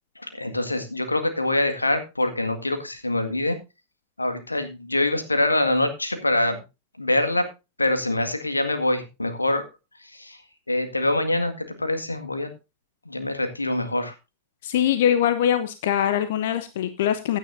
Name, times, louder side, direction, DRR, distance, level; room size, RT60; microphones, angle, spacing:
voice 1, 0.3-3.6 4.2-6.6 7.0-7.5 7.8-9.6 10.0-10.4 10.7-12.5 13.1-14.1, left 2 dB, 80° left, 7 dB, 1.9 m, -24 dB
voice 2, 14.6-17.4, left 10 dB, 55° left, 11 dB, 0.9 m, -22 dB
16.0 x 10.5 x 2.6 m, 0.27 s
figure-of-eight pair, 90°, 0 cm